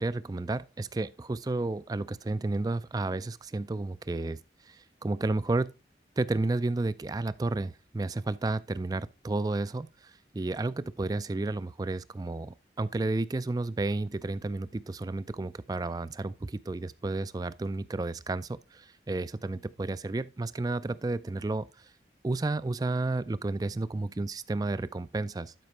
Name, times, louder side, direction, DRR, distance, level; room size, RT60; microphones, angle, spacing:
voice 1, 0.0-5.7 6.2-21.9 22.2-25.5, right 2 dB, 20° right, 0.3 m, -32 dB
12.0 x 5.1 x 3.2 m
head